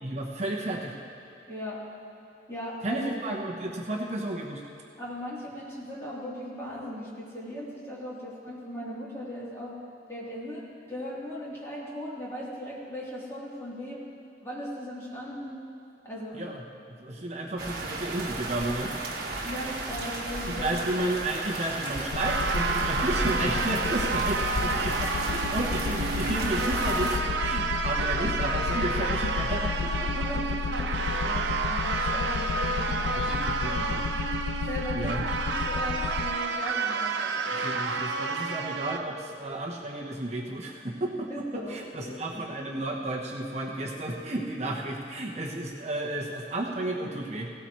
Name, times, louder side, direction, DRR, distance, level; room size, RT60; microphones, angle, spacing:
voice 1, 0.0-0.9 2.8-4.6 16.3-16.6 16.9-18.9 20.5-30.4 33.2-34.0 34.9-35.2 37.5-47.5, right 1 dB, 40° right, -1 dB, 1.1 m, -32 dB
voice 2, 1.5-1.8 2.5-3.1 5.0-9.7 10.1-14.1 14.4-15.6 16.0-16.4 19.4-20.7 30.2-33.3 33.6-33.9 34.7-37.6 41.3-42.4, equal, 15° left, -8 dB, 3.3 m, -38 dB
sound 1, 17.6-27.2, right 2 dB, 60° right, 1.6 m, -34 dB
sound 2, 22.1-36.3, left 6 dB, 80° left, 0.3 m, -33 dB
sound 3, 22.2-39.0, right 4 dB, 85° right, 0.8 m, -30 dB
18.0 x 17.0 x 3.2 m, 2.8 s
head